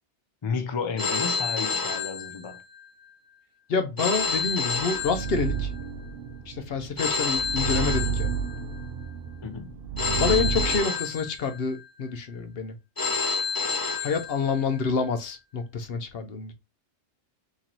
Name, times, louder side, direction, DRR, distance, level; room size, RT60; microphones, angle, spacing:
voice 1, 0.4-2.6 9.4-9.7, left 5 dB, 40° left, 0.4 m, -32 dB
Telephone, 1.0-2.8 4.0-5.8 7.0-8.8 10.0-11.8 13.0-14.8, left 4 dB, 20° left, 0.8 m, -29 dB
voice 2, 3.7-5.7 6.5-8.3 10.2-12.7 14.0-16.5, left 5 dB, 60° left, 0.8 m, -28 dB
sound 1, 4.4-10.8, right 7 dB, 60° right, 0.7 m, -31 dB
3.0 x 2.9 x 3.9 m
omnidirectional pair, 1.2 m